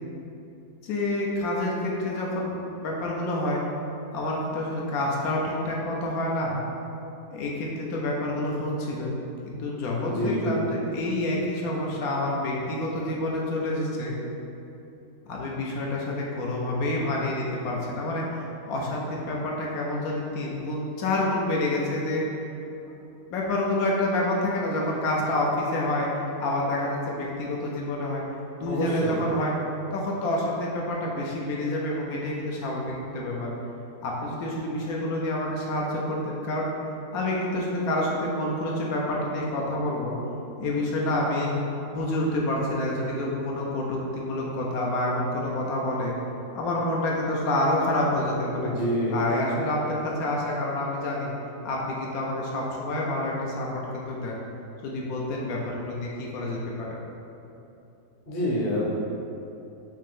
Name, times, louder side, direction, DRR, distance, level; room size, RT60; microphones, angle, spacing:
voice 1, 0.8-3.6 4.1-6.5 7.3-9.2 9.4-14.1 15.3-22.2 23.3-28.2 28.6-29.5 29.9-33.5 34.0-36.7 37.1-40.1 40.6-41.5 41.9-46.1 46.5-48.7 49.1-51.3 51.6-54.4 54.8-57.0, left 1 dB, 75° left, -3 dB, 1.1 m, -28 dB
voice 2, 10.0-10.6 28.7-29.2 48.6-49.2 58.3-58.9, left 1 dB, 40° left, -5 dB, 0.8 m, -27 dB
5.0 x 2.8 x 3.6 m, 2.8 s
omnidirectional pair, 1.6 m